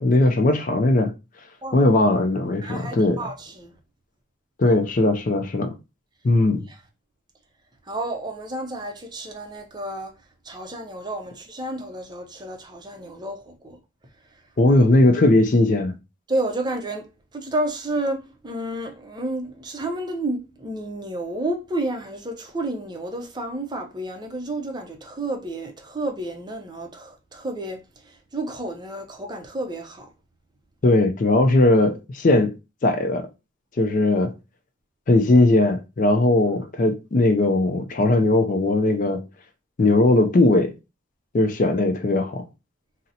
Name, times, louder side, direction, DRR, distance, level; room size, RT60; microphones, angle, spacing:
voice 1, 0.0-1.1 1.7-3.2 4.6-5.7 6.2-6.6 14.6-16.0 30.8-32.5 32.8-33.2 33.8-34.3 35.1-39.3 39.8-40.7 41.3-42.4, left 2 dB, 45° left, 0.4 m, -19 dB
voice 2, 2.6-3.7 6.7-6.8 7.9-10.1 10.4-13.8 14.3-14.4 16.3-17.1 17.3-30.1, right 1 dB, 20° right, 0.5 m, -31 dB
3.9 x 2.0 x 2.7 m
head